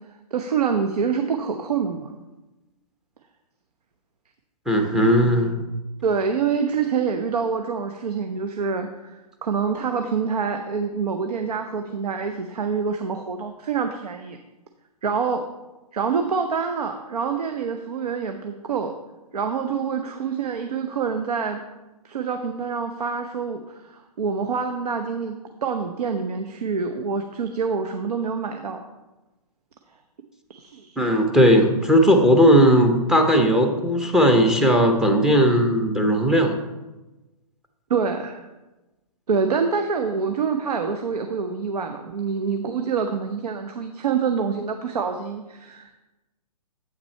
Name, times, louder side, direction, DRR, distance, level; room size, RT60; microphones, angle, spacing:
voice 1, 0.3-2.2 6.0-14.4 15.0-15.4 15.9-18.9 19.3-21.6 22.0-28.8 30.5-31.0 37.9-38.4 39.3-46.0, right 5 dB, 75° right, 6 dB, 0.8 m, -26 dB
voice 2, 4.7-5.6 31.0-36.5, equal, 5° right, 4 dB, 0.6 m, -17 dB
8.2 x 6.0 x 4.4 m, 1.1 s
hypercardioid pair, 140°, 20 cm